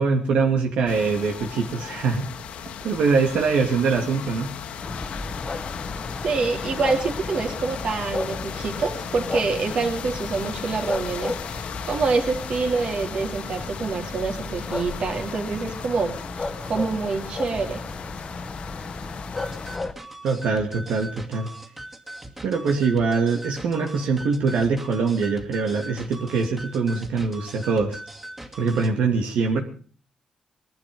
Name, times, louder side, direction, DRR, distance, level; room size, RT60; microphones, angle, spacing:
voice 1, 0.0-2.3 2.8-4.5 20.2-21.5 22.4-28.0 28.6-29.6, right 4 dB, 85° right, 2 dB, 2.7 m, -23 dB
sound 1, 0.9-19.8, left 8 dB, 80° left, 1.7 m, -37 dB
sound 2, 4.8-19.9, left 3 dB, 25° left, 1.3 m, -34 dB
voice 2, 6.2-17.8, right 4 dB, 55° right, 3 dB, 3.9 m, -26 dB
sound 3, 19.4-28.9, right 1 dB, 15° right, 2.6 m, -40 dB
21.5 x 12.0 x 5.4 m, 0.42 s
cardioid pair, 125°, 2 cm